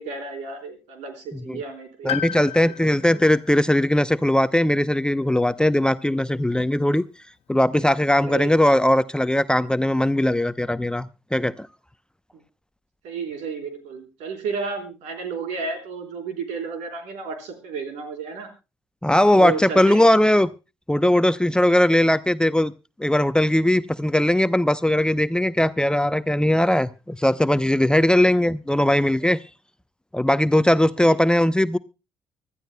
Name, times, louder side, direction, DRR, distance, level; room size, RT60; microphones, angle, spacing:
voice 1, 0.0-2.7 3.0-3.2 7.8-7.9 8.3-8.7 13.0-18.5 19.3-20.2 31.0-31.1, right 5 dB, 70° right, 4.1 m, -32 dB
voice 2, 2.0-7.0 7.5-11.7 19.0-20.5 20.9-22.7 23.0-29.4 30.1-31.8, left 1 dB, 5° left, 0.7 m, -19 dB
Piano, 2.1-6.0 6.2-6.3 7.5-7.6, left 10 dB, 55° left, 0.6 m, -36 dB
24.5 x 12.5 x 2.2 m
hypercardioid pair, 50°, 12 cm